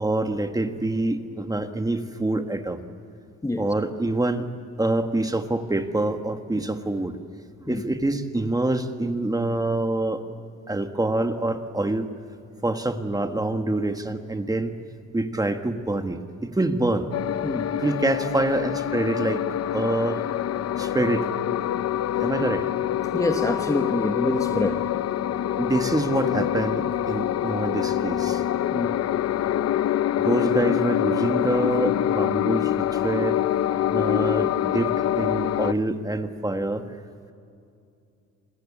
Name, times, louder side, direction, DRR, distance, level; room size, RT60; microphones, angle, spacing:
voice 1, 0.0-2.8 3.6-4.5 4.8-7.2 7.7-10.2 10.7-12.1 12.6-14.8 15.1-17.2 17.7-19.4 19.7-20.2 20.8-21.3 21.6-21.7 22.2-22.7 25.6-28.4 30.2-33.4 33.9-36.9, right 2 dB, 10° right, 1.4 m, -26 dB
voice 2, 3.4-3.7 7.7-7.8 17.4-17.7 23.1-24.9 28.7-29.0, left 2 dB, 10° left, 1.0 m, -26 dB
sound 1, 17.1-35.7, left 11 dB, 60° left, 0.6 m, -25 dB
29.0 x 22.0 x 8.5 m
wide cardioid pair, 170°, 29 cm